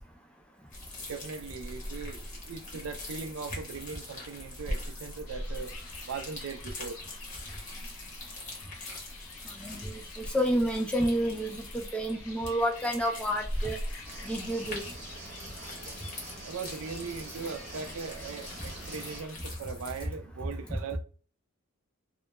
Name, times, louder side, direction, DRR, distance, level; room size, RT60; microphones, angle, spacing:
sound 1, 0.7-20.1, left 1 dB, 35° left, 0.8 m, -42 dB
voice 1, 1.0-5.7 6.0-7.0 16.4-21.0, right 5 dB, 70° right, 0.3 m, -39 dB
sound 2, 5.3-19.4, left 4 dB, 75° left, 0.7 m, -49 dB
voice 2, 9.6-13.8 14.2-14.8, equal, 5° left, 0.4 m, -29 dB
sound 3, 14.0-19.2, right 2 dB, 35° right, 0.8 m, -45 dB
2.2 x 2.0 x 2.9 m
head